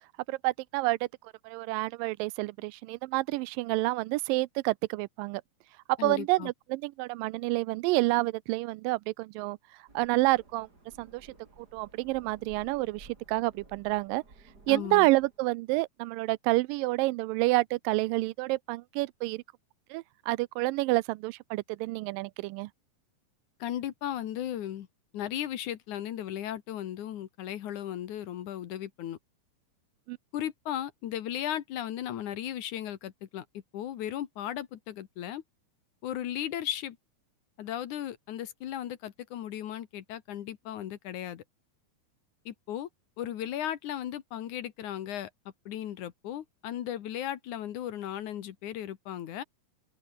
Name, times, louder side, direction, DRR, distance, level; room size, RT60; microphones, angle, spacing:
voice 1, 0.3-1.0 1.4-5.4 5.9-9.6 9.9-10.7 11.0-11.3 11.6-14.2 14.7-19.4 19.9-22.7 30.1-30.2, right 21 dB, 90° right, 2.3 m, -28 dB
voice 2, 6.0-6.5 14.7-15.1 23.6-24.9 25.1-29.2 30.3-33.5 33.7-35.4 36.0-37.0 37.6-41.4 42.5-42.9 43.2-45.3 45.7-49.4, left 11 dB, 65° left, 2.7 m, -36 dB
sound 1, 9.9-15.4, right 3 dB, 25° right, 5.1 m, -56 dB
open air
omnidirectional pair, 3.9 m